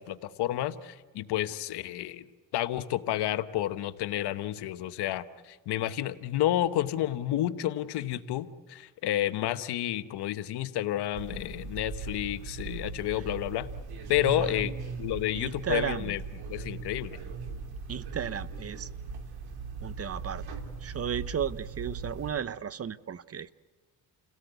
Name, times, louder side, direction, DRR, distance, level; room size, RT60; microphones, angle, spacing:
voice 1, 0.0-2.3 2.5-13.7 14.1-14.7 15.0-16.2 16.5-17.2, left 13 dB, 90° left, 11 dB, 1.1 m, -30 dB
sound 1, 11.1-22.3, right 4 dB, 70° right, 2.9 m, -39 dB
voice 2, 15.3-16.1 17.9-18.9 19.8-20.4 20.8-23.5, right 8 dB, 40° right, 16 dB, 0.8 m, -34 dB
29.5 x 17.5 x 8.1 m, 1.4 s
cardioid pair, 95°, 39 cm